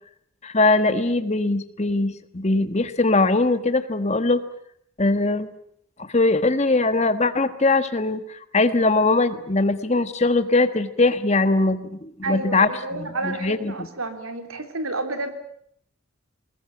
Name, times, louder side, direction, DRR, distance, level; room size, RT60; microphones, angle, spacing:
voice 1, 0.4-4.4 5.0-5.5 6.0-13.9, left 2 dB, 30° left, 11 dB, 1.4 m, -21 dB
voice 2, 12.2-15.3, right 2 dB, 85° right, 7 dB, 3.5 m, -30 dB
21.0 x 20.5 x 9.8 m, 0.69 s
head